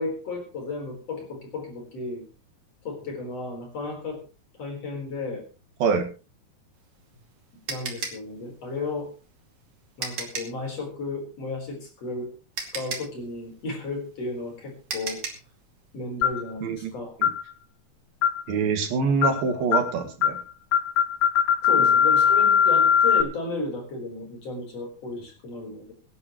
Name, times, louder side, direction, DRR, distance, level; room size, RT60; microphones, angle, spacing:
voice 1, 0.0-2.2 2.8-4.2 4.6-5.4 7.7-9.1 10.0-12.3 12.7-15.2 15.9-17.2 21.6-25.9, left 3 dB, 45° left, 1 dB, 5.1 m, -33 dB
voice 2, 5.8-6.1 16.6-16.9 17.2-17.3 18.5-20.4 21.8-21.9, right 5 dB, 80° right, 4 dB, 3.7 m, -25 dB
sound 1, 6.8-10.6 12.0-12.1 12.6-15.5, right 4 dB, 45° right, 3.3 m, -35 dB
sound 2, 16.2-16.5 17.2-17.4 18.2-18.5 19.2-19.4 19.7-19.9 20.2-20.4 20.7-23.2, left 8 dB, 65° left, 2.1 m, -20 dB
24.0 x 11.0 x 3.1 m, 0.33 s
omnidirectional pair, 4.1 m